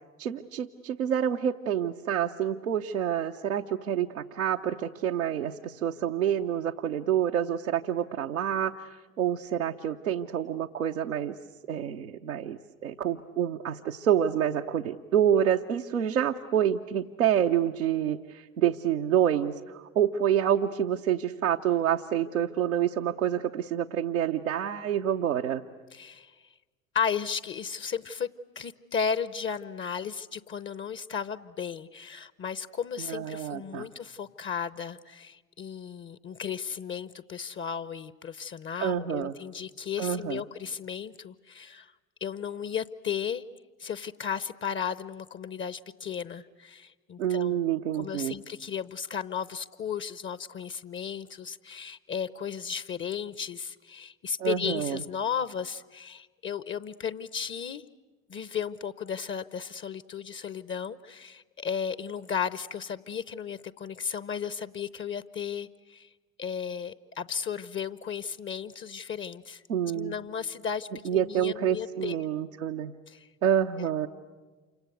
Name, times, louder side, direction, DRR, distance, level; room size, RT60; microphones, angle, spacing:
voice 1, 0.2-11.4 11.7-25.6 33.0-33.9 38.8-39.3 40.0-40.4 47.2-48.4 54.4-55.0 69.7-70.1 71.0-72.9 73.4-74.1, right 10 dB, 80° right, 1 dB, 0.9 m, -27 dB
voice 2, 25.9-26.3 26.9-28.3 28.6-41.9 42.2-43.4 43.8-47.7 47.9-57.8 58.3-66.1 66.4-69.6 69.9-72.2 73.1-73.3, left 7 dB, 30° left, 16 dB, 0.8 m, -34 dB
28.5 x 26.0 x 8.1 m, 1.3 s
figure-of-eight pair, 65°, 40 cm